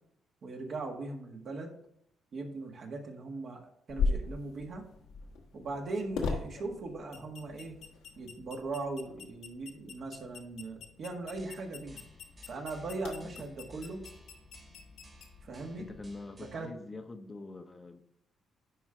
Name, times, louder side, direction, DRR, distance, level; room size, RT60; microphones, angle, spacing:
voice 1, 0.4-1.7 2.3-3.6 3.9-4.9 5.5-7.8 8.2-12.0 12.5-14.1 15.4-15.8 16.5-16.7, right 3 dB, 55° right, 2 dB, 1.7 m, -39 dB
sound 1, 3.9-16.1, left 4 dB, 90° left, 1.4 m, -40 dB
sound 2, 11.4-16.7, right 1 dB, 30° right, 1.9 m, -57 dB
voice 2, 15.8-18.0, left 3 dB, 25° left, 7 dB, 0.8 m, -45 dB
10.5 x 3.8 x 4.4 m, 0.73 s
cardioid pair, 90°, 0 cm